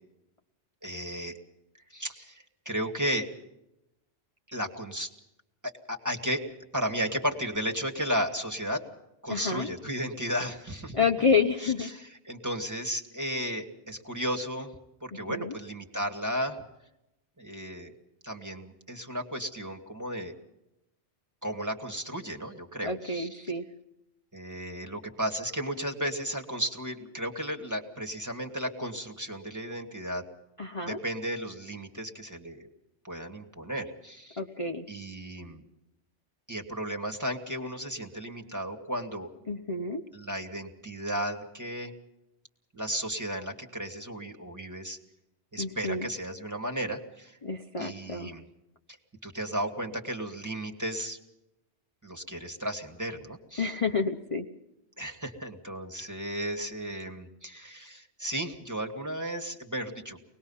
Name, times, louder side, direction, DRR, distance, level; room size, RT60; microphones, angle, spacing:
voice 1, 0.8-1.4 1.9-3.3 4.5-5.1 5.6-6.4 6.7-8.8 9.2-11.0 11.6-14.7 15.0-16.6 17.4-17.9 18.2-20.3 21.4-23.5 24.3-30.3 30.9-32.7 33.0-34.4 34.9-35.6 36.5-39.3 40.1-41.9 42.7-45.0 45.5-47.4 47.8-48.5 49.2-51.2 52.0-53.8 55.0-60.2, equal, 15° right, 2 dB, 2.1 m, -34 dB
voice 2, 9.3-9.7 10.9-11.9 15.3-15.5 22.8-23.6 30.6-31.0 34.4-34.8 39.5-40.0 45.6-46.1 47.4-48.3 53.6-54.4, left 4 dB, 30° left, 2 dB, 1.0 m, -29 dB
24.5 x 20.0 x 5.7 m, 0.88 s
omnidirectional pair, 1.2 m